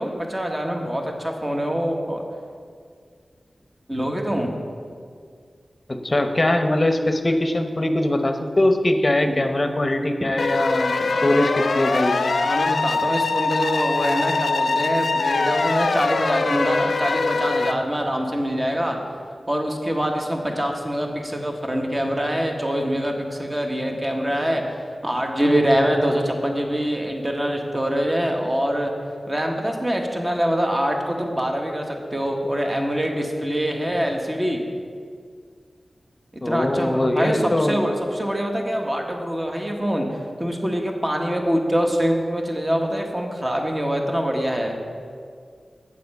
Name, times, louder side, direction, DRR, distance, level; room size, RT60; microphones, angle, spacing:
voice 1, 0.0-2.2 3.9-4.5 9.3-9.4 11.0-11.1 12.4-19.0 19.5-24.6 25.0-28.9 29.3-34.6 36.4-44.8, equal, 25° right, 2 dB, 1.2 m, -24 dB
voice 2, 5.9-11.0 11.2-12.2 36.4-37.8, left 1 dB, 35° left, 6 dB, 0.7 m, -21 dB
sound 1, 10.4-17.7, left 3 dB, 75° left, 0.4 m, -22 dB
8.5 x 6.8 x 5.4 m, 2.1 s
wide cardioid pair, 70°, 0 cm